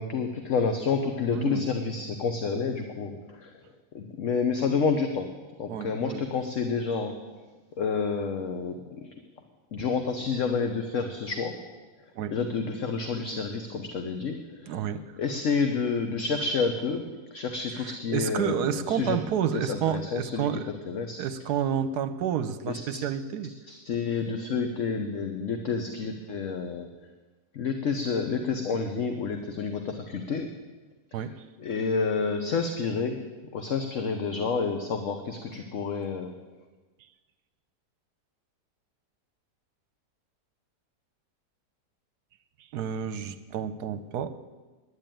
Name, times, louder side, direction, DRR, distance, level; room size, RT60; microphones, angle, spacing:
voice 1, 0.0-3.5 3.9-5.3 5.6-7.1 7.8-8.8 9.7-11.6 12.3-14.8 15.2-19.2 19.5-20.5 20.8-21.2 22.7-23.0 23.7-26.9 27.5-30.5 31.1-31.2 31.6-33.2 33.5-36.3, left 5 dB, 55° left, 5 dB, 1.2 m, -29 dB
voice 2, 1.3-1.7 5.7-6.2 12.1-12.4 14.7-15.0 17.7-20.7 21.2-23.5 31.1-31.4 42.7-44.3, right 8 dB, 75° right, 12 dB, 1.2 m, -30 dB
10.5 x 10.0 x 9.0 m, 1.3 s
omnidirectional pair, 1.8 m